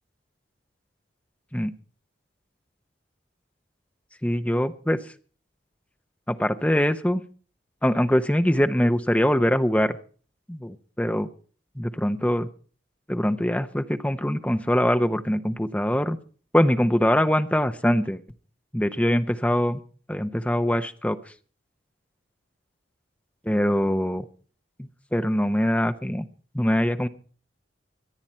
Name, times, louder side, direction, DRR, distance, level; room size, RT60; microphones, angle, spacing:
voice 1, 4.2-5.0 6.3-7.2 7.8-9.9 10.5-11.3 11.8-12.5 13.1-16.2 16.5-18.2 18.7-19.8 20.1-21.2 23.4-24.2 24.8-26.3 26.5-27.1, equal, 5° left, 9 dB, 0.8 m, -23 dB
25.5 x 8.9 x 4.4 m, 0.42 s
head